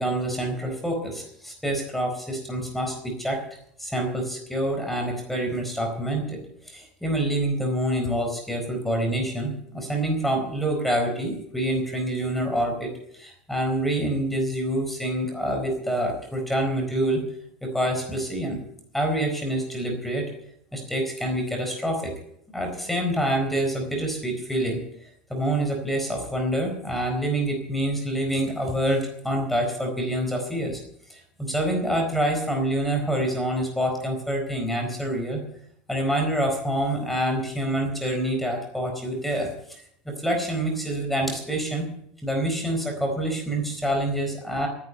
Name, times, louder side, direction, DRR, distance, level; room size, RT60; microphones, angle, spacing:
voice 1, 0.0-3.4 3.8-17.2 17.6-18.6 18.9-20.3 20.7-22.1 22.5-24.8 25.3-30.8 31.1-35.4 35.9-39.8 40.1-41.9 42.2-44.7, right 1 dB, 5° left, 2 dB, 4.3 m, -26 dB
14.0 x 10.0 x 8.0 m, 0.70 s
supercardioid pair, 125°, 5 cm